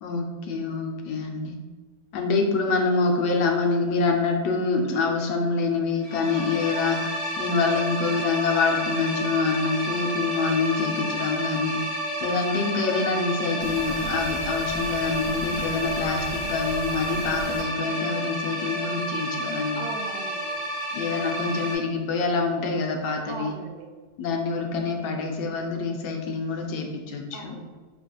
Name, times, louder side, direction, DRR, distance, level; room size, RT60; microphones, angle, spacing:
voice 1, 0.0-1.5 2.1-7.0 7.4-11.8 12.2-19.9 20.9-23.5 24.2-27.6, left 4 dB, 85° left, 2 dB, 1.2 m, -26 dB
sound 1, 6.0-21.8, right 1 dB, 50° left, 0.7 m, -30 dB
sound 2, 13.6-17.6, right 1 dB, 5° left, 1.0 m, -39 dB
voice 2, 19.7-20.6 23.3-23.9 27.3-27.9, right 3 dB, 75° right, 2 dB, 1.1 m, -38 dB
4.9 x 3.1 x 2.3 m, 1.4 s
omnidirectional pair, 1.8 m